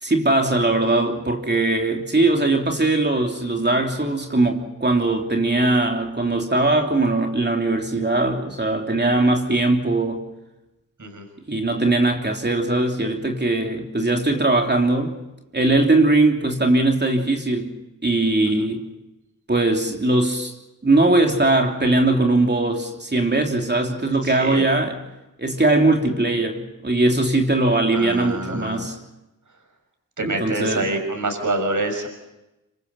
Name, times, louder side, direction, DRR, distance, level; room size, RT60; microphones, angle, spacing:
voice 1, 0.0-10.2 11.5-15.2 15.5-17.7 18.0-18.8 19.5-20.5 20.8-25.0 25.4-28.9 30.2-30.9, right 2 dB, 25° right, 3.2 m, -20 dB
voice 2, 24.2-24.6 27.9-28.9 30.2-32.1, right 2 dB, 50° right, 6.3 m, -26 dB
26.0 x 25.5 x 5.6 m
cardioid pair, 50°, 38 cm